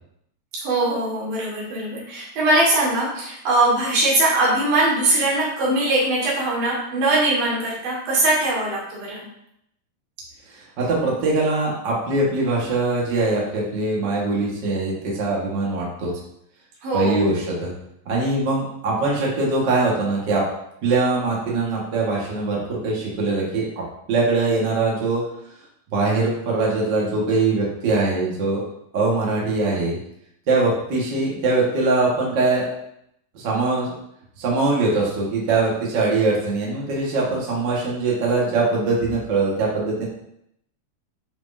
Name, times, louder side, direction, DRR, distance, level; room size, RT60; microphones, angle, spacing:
voice 1, 0.5-9.2 16.8-17.3, right 2 dB, 85° right, -5 dB, 3.7 m, -21 dB
voice 2, 10.5-16.1 16.9-17.7 18.0-20.5 20.8-23.8 24.1-25.2 25.9-28.6 28.9-30.0 30.5-32.7 33.3-34.0 34.4-40.1, right 3 dB, 45° right, -4 dB, 1.6 m, -22 dB
8.5 x 4.5 x 2.7 m, 0.75 s
omnidirectional pair, 4.0 m